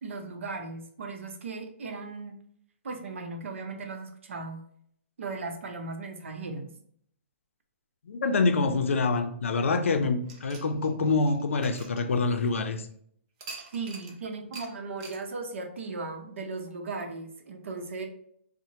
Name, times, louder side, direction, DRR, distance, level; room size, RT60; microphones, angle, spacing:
voice 1, 0.0-2.4 2.8-4.6 5.2-6.7 13.7-18.0, right 3 dB, 70° right, 0.7 m, -37 dB
voice 2, 8.0-12.9, left 3 dB, 85° left, 0.5 m, -26 dB
sound 1, 10.3-12.7 13.4-14.2 14.5-14.7 15.0-15.2, right 4 dB, 30° right, 0.6 m, -45 dB
4.3 x 2.1 x 2.8 m
hypercardioid pair, 155°, 7 cm